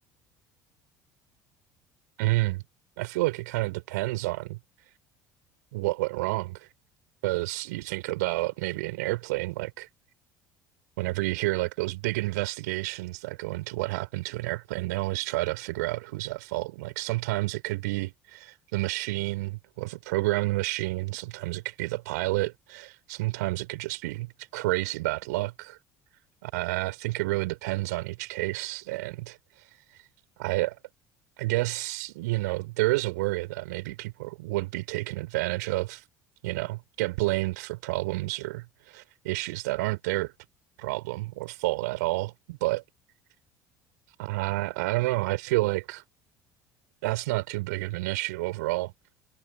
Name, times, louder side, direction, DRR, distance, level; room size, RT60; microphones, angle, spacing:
voice 1, 2.2-2.6 3.0-4.6 5.7-6.7 7.2-9.9 11.0-25.8 26.4-30.0 30.4-30.8 31.4-36.0 36.4-40.3 40.8-42.8 44.2-46.0 47.0-48.9, right 21 dB, 65° right, 4.3 m, -30 dB
figure-of-eight pair, 60°, 10 cm